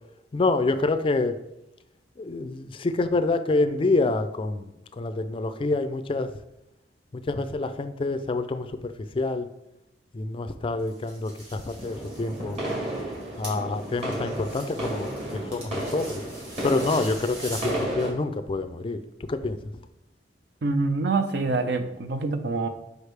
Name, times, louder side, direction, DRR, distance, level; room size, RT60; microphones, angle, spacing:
voice 1, 0.3-1.4 2.2-6.3 7.1-9.5 10.1-12.6 13.4-16.2 16.6-19.0 19.3-19.7, left 3 dB, 30° left, 10 dB, 0.4 m, -27 dB
sound 1, 10.8-17.8, right 1 dB, 85° right, 2.4 m, -43 dB
sound 2, 11.8-18.1, right 1 dB, 40° right, 2.0 m, -33 dB
voice 2, 20.6-22.7, right 3 dB, 65° right, 8 dB, 0.6 m, -25 dB
6.4 x 5.2 x 3.3 m, 0.90 s
head